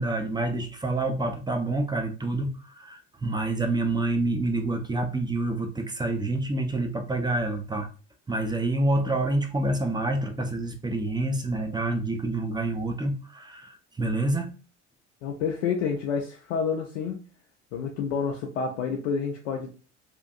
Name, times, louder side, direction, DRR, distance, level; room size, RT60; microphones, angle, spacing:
voice 1, 0.0-7.9 8.3-14.5, right 2 dB, 10° right, 0.6 m, -27 dB
voice 2, 15.2-17.2 17.7-19.7, left 6 dB, 75° left, 0.6 m, -29 dB
3.5 x 2.5 x 2.4 m
hypercardioid pair, 60°, 37 cm